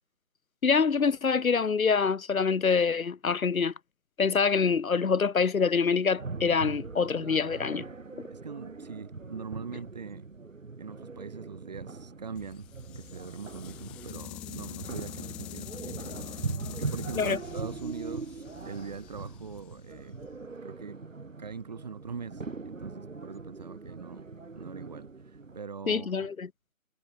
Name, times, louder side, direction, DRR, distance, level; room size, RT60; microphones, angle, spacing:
voice 1, 0.6-3.7 4.2-7.9 17.2-17.4 25.9-26.5, left 5 dB, 80° left, 1.3 m, -25 dB
sound 1, 6.2-25.6, right 4 dB, 70° right, 4.7 m, -41 dB
voice 2, 8.3-10.3 10.8-20.1 20.6-21.0 21.4-24.3 24.6-26.3, right 5 dB, 30° right, 3.8 m, -42 dB
sound 2, 12.4-20.5, left 18 dB, 5° left, 1.6 m, -45 dB
figure-of-eight pair, 175°, 41 cm